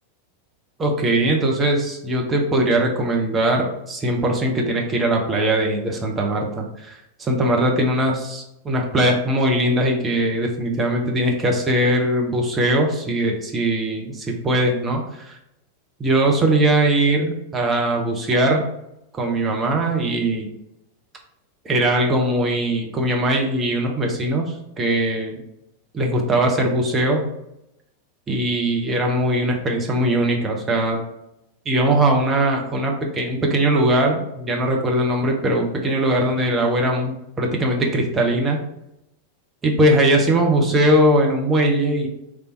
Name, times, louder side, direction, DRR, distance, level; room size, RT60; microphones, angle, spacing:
voice 1, 0.8-6.9 7.2-15.4 16.0-18.6 19.1-20.5 21.6-25.4 25.9-27.2 28.3-31.0 31.7-38.6 39.6-42.1, right 1 dB, 20° right, 1 dB, 0.7 m, -20 dB
3.3 x 2.7 x 3.2 m, 0.84 s
figure-of-eight pair, 90°, 0 cm